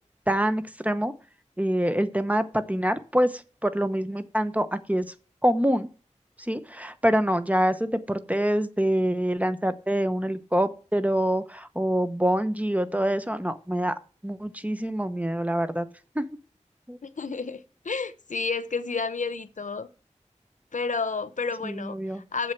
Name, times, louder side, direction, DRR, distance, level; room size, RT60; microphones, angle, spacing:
voice 1, 0.3-1.1 1.6-5.0 5.4-5.9 6.4-13.9 14.2-15.9 16.1-16.2 16.9-17.0 21.6-22.2, equal, 10° right, 0.9 m, -25 dB
voice 2, 17.0-19.9 20.7-22.0 22.3-22.5, left 4 dB, 90° left, 0.7 m, -30 dB
7.7 x 7.4 x 5.8 m
wide cardioid pair, 40°, 13 cm